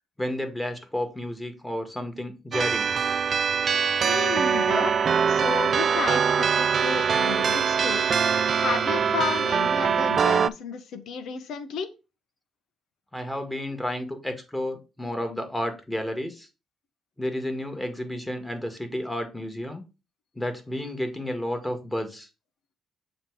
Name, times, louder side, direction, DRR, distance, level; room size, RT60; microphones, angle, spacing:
voice 1, 0.2-2.9 13.1-16.5 17.2-19.8 20.4-22.3, left 1 dB, 10° left, 6 dB, 1.8 m, -31 dB
sound 1, 2.5-10.5, right 6 dB, 50° right, 0.3 m, -23 dB
voice 2, 4.0-4.9 5.3-11.9, left 5 dB, 75° left, 10 dB, 1.1 m, -32 dB
7.3 x 3.2 x 4.7 m, 0.29 s
cardioid pair, 90°, 0 cm